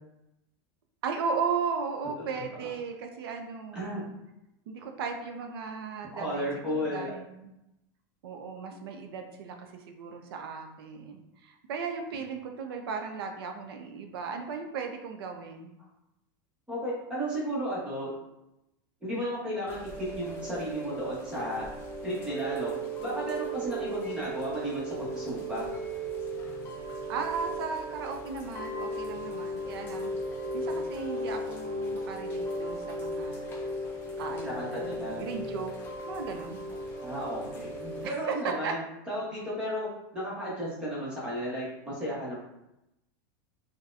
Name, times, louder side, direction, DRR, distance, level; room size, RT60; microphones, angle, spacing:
voice 1, 1.0-4.1 4.7-7.5 8.2-15.7 27.1-30.1 30.5-33.5 34.2-35.7 36.0-36.6 37.4-37.7 38.0-38.7, right 5 dB, 85° right, 4 dB, 0.5 m, -36 dB
voice 2, 6.1-7.1 16.7-18.1 19.0-21.7 22.0-22.7 23.0-25.7 34.4-35.2 37.0-38.8 39.1-39.9 40.1-42.4, equal, 10° right, -7 dB, 1.0 m, -34 dB
Chime / Rain, 19.7-38.1, right 1 dB, 20° left, 0.4 m, -36 dB
4.0 x 2.2 x 2.5 m, 0.88 s
supercardioid pair, 170°, 12 cm